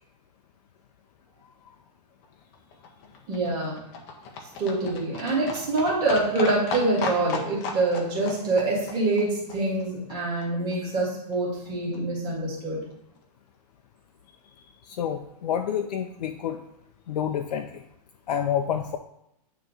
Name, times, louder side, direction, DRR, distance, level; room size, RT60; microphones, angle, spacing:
Livestock farm animals working animals, 2.2-10.5 10.7-10.8 11.0-11.1 11.3-11.4 11.6-11.7 11.9-12.0 12.3-12.4 12.6-12.7 12.9-13.0, left 4 dB, 15° left, 0.5 m, -36 dB
voice 1, 3.3-3.8 4.6-12.8, right 2 dB, 20° right, -5 dB, 1.8 m, -25 dB
voice 2, 14.9-16.6 17.1-17.8 18.3-19.0, left 9 dB, 75° left, 4 dB, 0.5 m, -28 dB
8.9 x 3.0 x 3.8 m, 0.78 s
hypercardioid pair, 175°, 21 cm